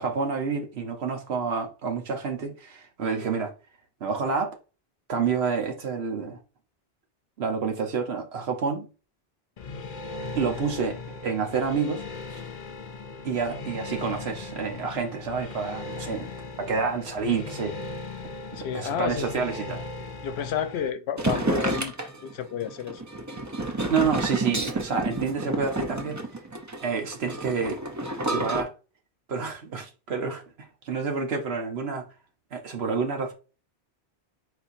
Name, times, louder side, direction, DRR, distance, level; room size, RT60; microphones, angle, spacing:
voice 1, 0.0-3.5 4.0-4.6 5.1-6.4 7.4-8.9 10.3-11.0 11.2-12.4 13.2-16.3 16.6-17.8 18.5-19.8 23.9-26.3 26.8-27.8 28.3-28.7 29.3-30.4 30.8-32.1 32.5-33.3, right 5 dB, 75° right, 1.2 m, -28 dB
sound 1, 9.6-20.9, left 3 dB, 55° left, 0.6 m, -38 dB
voice 2, 18.6-19.3 20.2-21.9 22.2-23.0, left 8 dB, 80° left, 0.9 m, -30 dB
sound 2, 21.2-28.6, right 2 dB, 20° right, 0.5 m, -30 dB
4.3 x 4.3 x 2.6 m
omnidirectional pair, 1.1 m